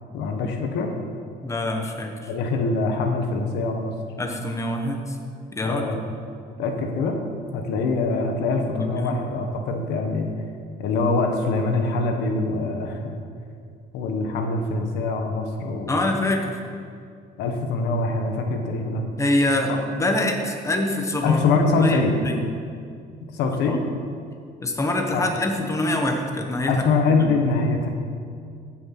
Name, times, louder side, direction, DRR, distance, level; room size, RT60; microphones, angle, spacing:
voice 1, 0.1-0.9 2.3-3.9 5.6-6.0 6.6-7.2 7.5-10.3 10.8-13.0 13.9-15.9 17.4-19.0 19.7-19.8 21.2-22.2 23.3-23.8 25.1-25.3 26.7-27.9, left 3 dB, 85° left, 3 dB, 1.5 m, -23 dB
voice 2, 1.4-2.3 4.2-5.2 5.5-5.9 8.7-9.2 15.9-16.6 19.2-21.4 21.8-22.5 23.6-23.8 24.6-26.9 27.2-27.3, left 1 dB, 15° left, 3 dB, 1.4 m, -25 dB
15.5 x 6.5 x 6.1 m, 2.3 s
cardioid pair, 110°, 17 cm